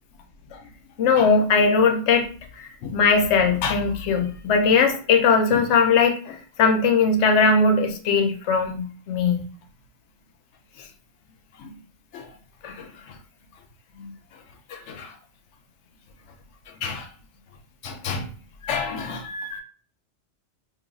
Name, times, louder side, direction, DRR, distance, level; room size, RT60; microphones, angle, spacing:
voice 1, 1.0-2.3 2.6-9.4 11.6-11.7 12.1-12.3 12.6-12.9 14.0-14.1 14.7-15.1 16.8-17.1 17.8-18.3 18.6-19.6, left 4 dB, 80° left, 5 dB, 0.9 m, -21 dB
2.5 x 2.3 x 3.9 m, 0.42 s
omnidirectional pair, 1.2 m